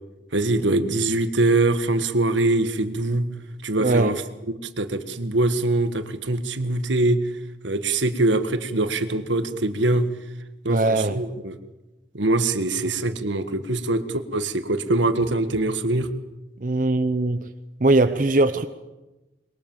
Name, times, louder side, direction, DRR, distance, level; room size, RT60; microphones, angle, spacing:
voice 1, 0.3-3.3 3.6-4.2 4.5-7.2 7.6-10.1 10.6-11.6 12.1-16.1, right 2 dB, 85° right, 10 dB, 1.6 m, -23 dB
voice 2, 3.8-4.2 10.7-11.2 16.6-17.5 17.8-18.7, right 2 dB, 45° right, 9 dB, 0.8 m, -20 dB
23.5 x 22.0 x 7.4 m, 1.1 s
head